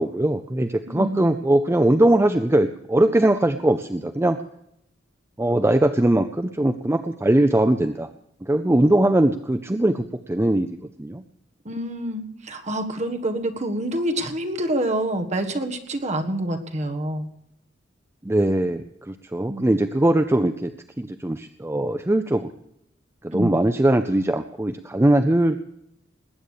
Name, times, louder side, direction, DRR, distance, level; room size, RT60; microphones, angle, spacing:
voice 1, 0.0-4.4 5.4-8.1 8.4-11.2 18.2-20.7 21.0-22.5 23.2-25.6, right 1 dB, 15° right, 9 dB, 0.5 m, -21 dB
voice 2, 0.9-1.2 11.6-17.3 19.5-19.6 23.3-23.5, right 1 dB, 40° right, 5 dB, 1.5 m, -27 dB
19.5 x 9.0 x 6.6 m, 0.78 s
head